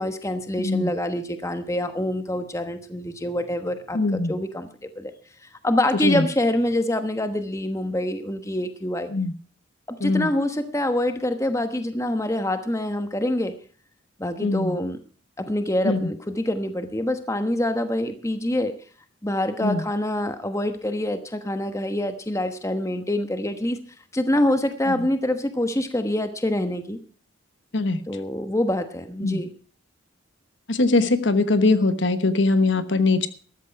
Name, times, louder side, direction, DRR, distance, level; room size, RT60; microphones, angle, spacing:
voice 1, 0.0-5.1 5.4-9.1 9.9-13.5 14.2-15.0 15.4-18.7 19.2-23.8 24.1-27.0 28.1-29.5, left 1 dB, 15° left, 9 dB, 1.1 m, -26 dB
voice 2, 0.6-0.9 3.9-4.3 6.0-6.3 9.1-9.3 10.0-10.3 14.4-14.7 15.8-16.0 19.6-19.8 24.9-25.0 27.7-28.0 29.2-29.4 30.7-33.3, left 3 dB, 65° left, 11 dB, 1.1 m, -21 dB
14.0 x 13.0 x 4.7 m, 0.41 s
head